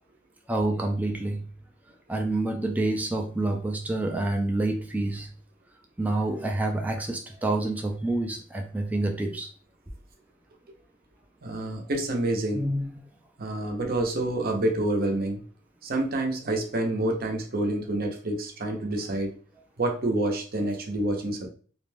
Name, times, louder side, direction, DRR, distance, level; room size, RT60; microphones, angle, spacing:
voice 1, 0.5-1.5 2.1-5.3 6.0-9.5 12.5-12.9, right 2 dB, 10° right, 2 dB, 0.3 m, -28 dB
voice 2, 11.4-12.7 13.4-15.4 15.8-19.3 19.8-21.5, right 1 dB, 50° right, 3 dB, 0.6 m, -28 dB
2.4 x 2.2 x 3.2 m, 0.41 s
head